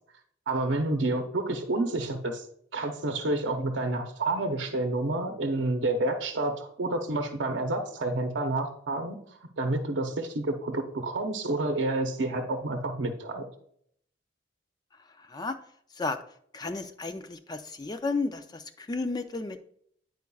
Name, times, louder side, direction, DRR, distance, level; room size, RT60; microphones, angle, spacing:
voice 1, 0.5-2.5 2.7-9.2 9.6-13.4, right 2 dB, 75° right, 4 dB, 0.7 m, -29 dB
voice 2, 15.1-15.6 15.9-16.2 16.5-19.6, left 3 dB, 20° left, 8 dB, 0.3 m, -33 dB
9.6 x 4.6 x 2.3 m, 0.66 s
head